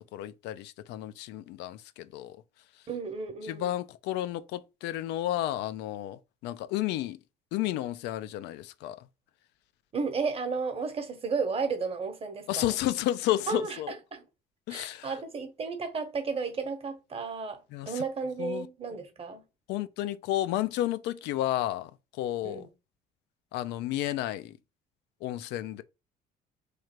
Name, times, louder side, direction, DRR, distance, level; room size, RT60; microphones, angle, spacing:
voice 1, 0.0-2.4 3.4-7.2 7.5-9.1 12.5-13.9 14.7-15.1 17.7-18.0 18.4-18.7 19.7-22.7 23.5-24.6 25.2-25.8, left 14 dB, 85° left, 0.4 m, -32 dB
voice 2, 2.9-3.7 9.9-12.8 13.5-14.2 14.7-19.5 22.4-22.7, right 4 dB, 35° right, 0.9 m, -33 dB
3.2 x 2.4 x 4.3 m
cardioid pair, 110°, 17 cm